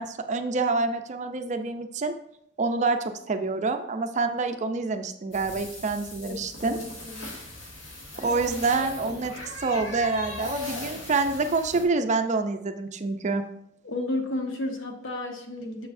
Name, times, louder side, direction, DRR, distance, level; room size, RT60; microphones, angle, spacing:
voice 1, 0.0-2.1 2.6-6.8 8.2-13.4, right 3 dB, 40° right, 7 dB, 0.5 m, -27 dB
sound 1, 5.3-11.8, left 2 dB, 90° left, 2.1 m, -38 dB
voice 2, 6.6-7.4 13.8-15.9, left 2 dB, 75° left, 4 dB, 1.0 m, -32 dB
7.0 x 6.8 x 2.6 m, 0.72 s
head